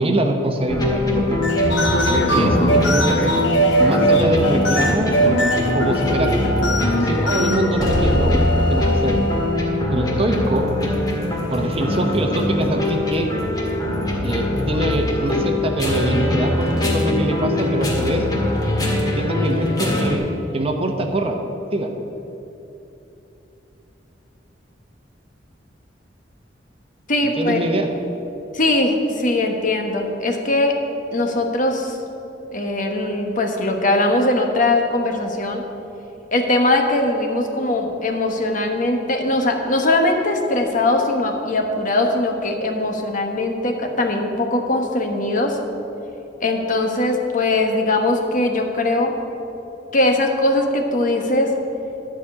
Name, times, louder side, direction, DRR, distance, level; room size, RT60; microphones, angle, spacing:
voice 1, 0.0-1.4 1.9-3.3 3.8-6.3 6.9-9.1 9.9-10.7 11.5-13.3 14.2-18.2 19.1-21.4 21.7-21.9 27.4-27.9, right 1 dB, 30° right, 4 dB, 0.9 m, -23 dB
sound 1, 0.7-20.2, left 1 dB, 20° left, 1.7 m, -22 dB
sound 2, 1.3-9.6, right 1 dB, 70° left, 1.1 m, -20 dB
voice 2, 27.1-27.6 28.5-30.7 31.1-32.0 32.5-35.6 36.3-45.6 46.4-49.1 49.9-51.5, left 2 dB, 45° left, 4 dB, 1.1 m, -20 dB
11.5 x 5.1 x 8.4 m, 3.0 s
head